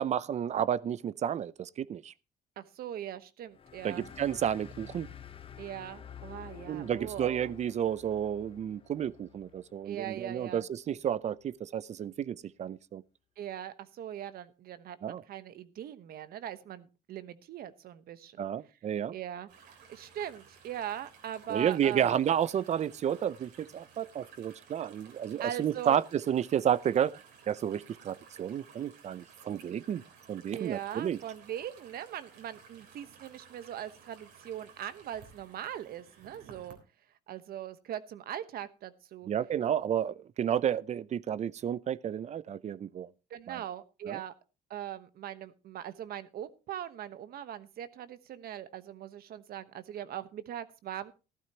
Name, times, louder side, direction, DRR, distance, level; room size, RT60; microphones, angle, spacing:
voice 1, 0.0-2.1 3.8-5.1 6.7-13.0 15.0-15.2 18.4-19.1 21.5-27.2 27.5-30.0 30.3-31.2 39.3-43.1 43.5-43.6 44.1-44.2, right 9 dB, 40° right, 0.6 m, -31 dB
voice 2, 2.6-4.1 5.6-7.5 9.9-10.6 13.4-18.5 19.1-19.5 19.9-22.1 25.4-26.0 30.5-36.8 37.3-39.3 43.3-44.3 44.7-51.1, right 10 dB, 65° right, 1.1 m, -41 dB
sound 1, 3.5-10.6, left 8 dB, 35° left, 0.9 m, -50 dB
sound 2, 19.5-36.8, right 6 dB, 80° right, 3.7 m, -56 dB
15.0 x 12.5 x 2.9 m
cardioid pair, 110°, 17 cm